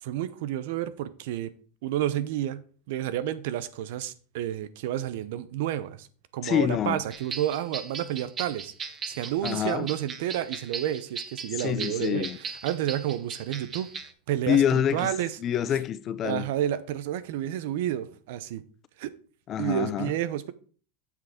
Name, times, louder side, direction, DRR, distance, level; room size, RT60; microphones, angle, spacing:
voice 1, 0.0-1.5 1.8-6.1 6.3-8.7 9.1-13.9 14.3-14.6 14.9-15.4 16.2-18.6 19.0-19.1 19.6-20.5, right 12 dB, 70° right, 0.8 m, -30 dB
voice 2, 6.4-7.0 9.4-9.9 11.6-12.4 14.5-15.1 15.4-16.5 19.5-20.1, left 9 dB, 30° left, 0.5 m, -26 dB
sound 1, 7.1-14.1, right 5 dB, 25° right, 0.9 m, -38 dB
7.4 x 6.0 x 5.1 m
supercardioid pair, 145°, 0 cm